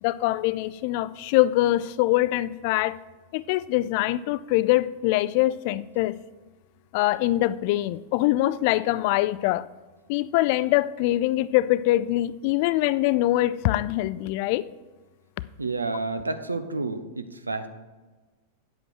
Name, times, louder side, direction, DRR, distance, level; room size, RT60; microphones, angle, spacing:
voice 1, 0.0-3.0 3.3-6.2 6.9-9.7 10.1-14.7, left 16 dB, 50° left, 18 dB, 0.4 m, -23 dB
voice 2, 15.6-17.7, right 3 dB, 90° right, 10 dB, 0.8 m, -30 dB
9.2 x 8.1 x 4.6 m, 1.3 s
figure-of-eight pair, 95°, 0 cm